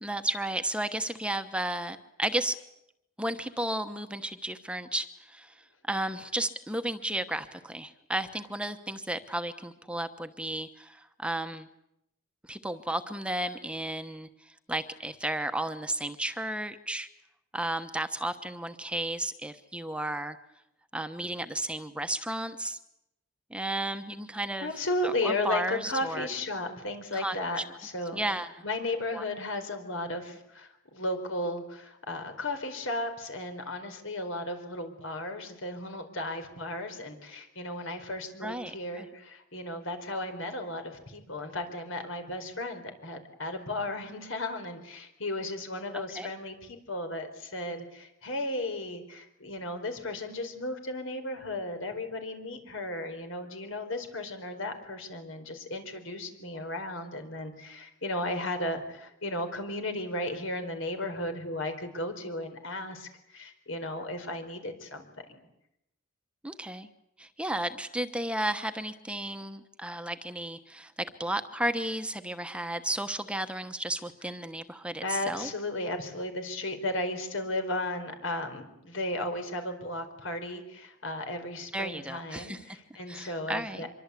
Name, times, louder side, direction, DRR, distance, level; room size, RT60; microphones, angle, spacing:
voice 1, 0.0-2.6 3.2-11.7 12.4-14.3 14.7-17.1 17.5-20.4 20.9-22.8 23.5-24.7 25.0-26.3 27.1-27.6 28.1-28.5 29.1-29.2 38.4-39.1 45.9-46.3 66.4-66.9 67.2-75.5 81.7-82.8 83.1-83.8, right 1 dB, 5° right, 8 dB, 1.0 m, -33 dB
voice 2, 24.6-28.2 28.6-65.4 75.0-83.9, left 1 dB, 80° left, 7 dB, 4.4 m, -35 dB
25.5 x 23.5 x 8.4 m, 0.83 s
head